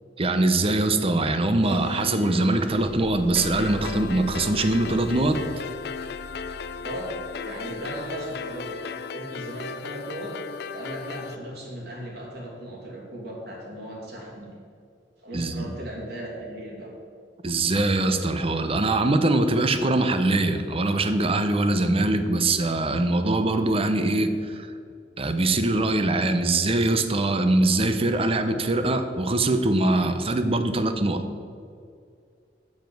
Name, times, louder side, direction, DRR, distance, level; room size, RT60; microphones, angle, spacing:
voice 1, 0.2-5.4 15.3-15.7 17.4-24.7 25.2-31.2, right 2 dB, 35° right, 8 dB, 0.7 m, -23 dB
sound 1, 1.6-8.8, left 2 dB, 80° left, 1.2 m, -41 dB
sound 2, 3.4-11.4, left 5 dB, 65° left, 0.4 m, -36 dB
voice 2, 7.4-10.4 10.6-14.6 15.2-16.9, right 1 dB, 65° right, -2 dB, 2.7 m, -37 dB
7.3 x 7.2 x 7.7 m, 2.3 s
head